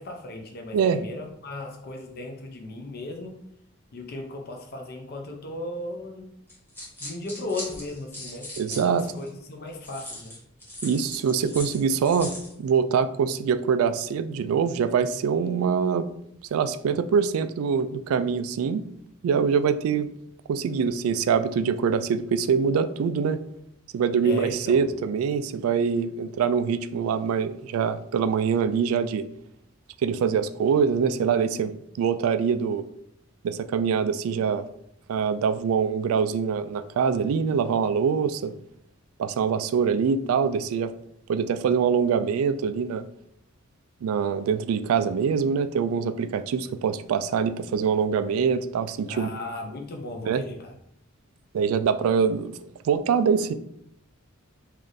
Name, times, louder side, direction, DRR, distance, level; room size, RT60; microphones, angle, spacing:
voice 1, 0.0-3.4 3.9-6.3 7.0-10.4 24.2-24.8 49.1-50.7, left 2 dB, 50° left, 2 dB, 0.5 m, -36 dB
voice 2, 0.7-1.0 8.6-9.1 10.8-16.1 16.5-18.8 19.2-20.1 20.5-23.4 23.9-29.3 30.0-31.7 32.0-32.9 33.4-34.7 35.1-38.5 39.2-40.9 41.3-43.0 44.0-49.3 50.2-50.4 51.5-52.5 52.8-53.5, right 6 dB, 85° right, 12 dB, 0.3 m, -24 dB
sound 1, 6.5-9.3 9.8-12.5, left 1 dB, 10° left, 1.1 m, -39 dB
3.3 x 2.5 x 3.9 m, 0.74 s
head